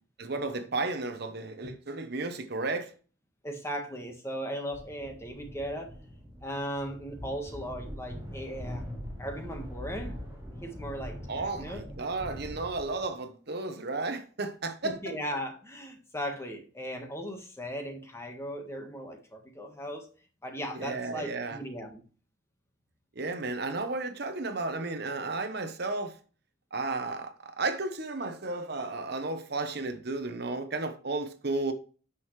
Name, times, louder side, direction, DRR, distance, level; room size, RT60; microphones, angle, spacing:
voice 1, 0.2-2.9 11.3-15.1 20.7-21.6 23.1-26.2 26.7-31.7, right 3 dB, 55° right, 0.9 m, -33 dB
voice 2, 3.4-5.9 6.4-8.8 9.2-10.2 10.6-11.9 14.8-20.1 20.4-22.0, equal, 15° left, 1.4 m, -37 dB
sound 1, 4.7-13.1, equal, 10° right, 3.5 m, -42 dB
9.1 x 6.3 x 3.2 m
head